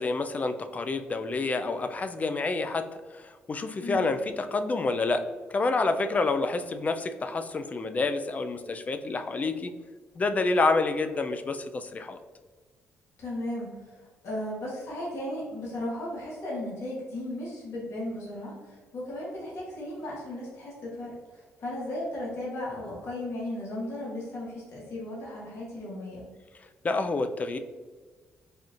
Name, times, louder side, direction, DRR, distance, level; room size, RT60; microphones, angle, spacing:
voice 1, 0.0-9.7 10.2-12.2 26.8-27.6, left 3 dB, 30° left, 8 dB, 0.3 m, -28 dB
voice 2, 3.8-4.1 13.2-26.2, left 1 dB, 65° left, -5 dB, 1.3 m, -36 dB
4.2 x 2.5 x 2.4 m, 1.4 s
supercardioid pair, 75°, 5 cm